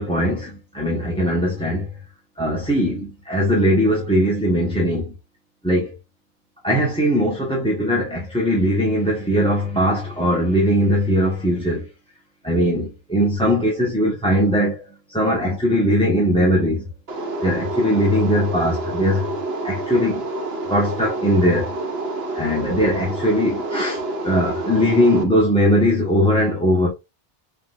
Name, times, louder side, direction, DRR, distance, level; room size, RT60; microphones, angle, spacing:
voice 1, 0.0-1.9 2.4-5.1 5.6-5.9 6.6-11.9 12.4-14.8 15.1-16.8 17.4-19.3 19.6-20.2 20.7-21.7 22.3-26.9, equal, 5° left, 1.4 m, -20 dB
sound 1, 17.1-25.2, right 2 dB, 80° right, 1.3 m, -28 dB
5.7 x 3.6 x 2.6 m
omnidirectional pair, 1.0 m